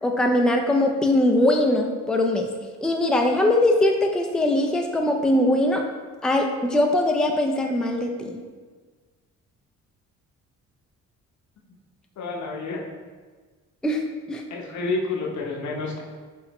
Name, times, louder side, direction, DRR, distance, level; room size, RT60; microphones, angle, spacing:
voice 1, 0.0-2.5 2.8-5.8 6.2-8.4 13.8-14.0 14.3-14.4, left 1 dB, 5° left, 2 dB, 0.4 m, -21 dB
voice 2, 12.2-12.8 14.5-16.0, left 3 dB, 70° left, -1 dB, 1.0 m, -29 dB
5.5 x 3.1 x 3.0 m, 1.4 s
cardioid pair, 90°, 30 cm